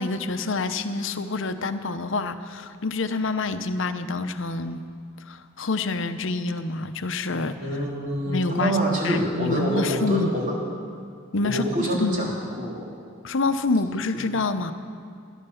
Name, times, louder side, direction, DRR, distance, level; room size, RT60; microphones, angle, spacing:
voice 1, 0.0-4.8 5.3-7.6 8.3-8.8 9.0-10.3 11.3-11.6 12.0-12.3 13.2-14.7, left 3 dB, 65° left, 10 dB, 0.8 m, -27 dB
voice 2, 7.6-10.6 11.4-12.3 12.6-12.9, equal, 40° right, -3 dB, 3.6 m, -26 dB
18.0 x 11.0 x 7.0 m, 2.2 s
head